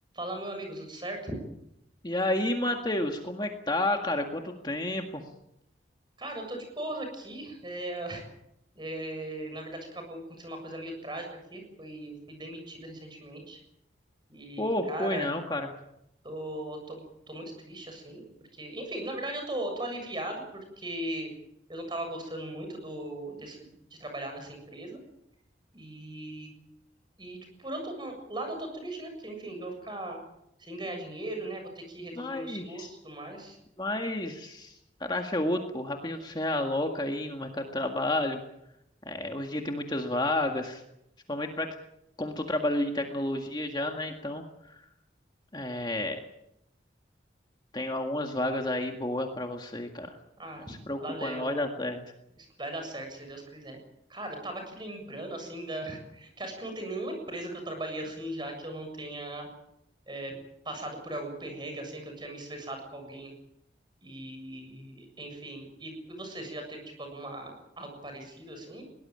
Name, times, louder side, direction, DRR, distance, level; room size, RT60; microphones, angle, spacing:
voice 1, 0.1-1.4 6.2-8.2 8.8-13.6 14.3-15.3 16.2-18.2 18.6-21.3 21.7-23.6 24.0-25.0 25.7-26.5 27.2-30.2 30.6-33.6 50.4-50.7 51.0-51.5 52.4-53.8 54.1-59.5 60.1-60.3 60.7-63.3 64.0-68.8, right 1 dB, 25° right, 4 dB, 7.2 m, -38 dB
voice 2, 2.0-5.2 14.6-15.7 32.2-32.9 33.8-34.7 35.0-38.4 39.1-40.8 41.3-41.7 42.2-44.4 45.5-46.2 47.7-50.1 50.7-52.0, left 1 dB, 25° left, 3 dB, 1.9 m, -30 dB
22.0 x 19.0 x 8.9 m, 0.81 s
head